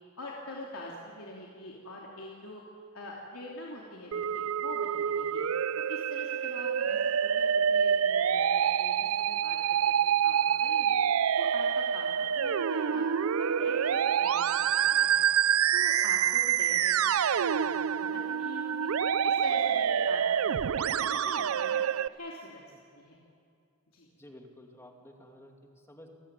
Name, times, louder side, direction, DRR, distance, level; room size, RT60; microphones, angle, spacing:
voice 1, 0.2-2.6 2.9-5.4 5.8-11.0 11.4-13.0 13.4-15.3 15.7-17.0 17.4-18.9 19.2-21.8 22.1-22.6 23.0-23.2 23.9-24.1, left 2 dB, 85° left, -3 dB, 3.0 m, -44 dB
Musical instrument, 4.1-22.1, right 8 dB, 80° right, 0.5 m, -27 dB
voice 2, 24.2-26.1, left 1 dB, 10° left, 2 dB, 2.4 m, -52 dB
28.5 x 14.5 x 9.4 m, 2.4 s
head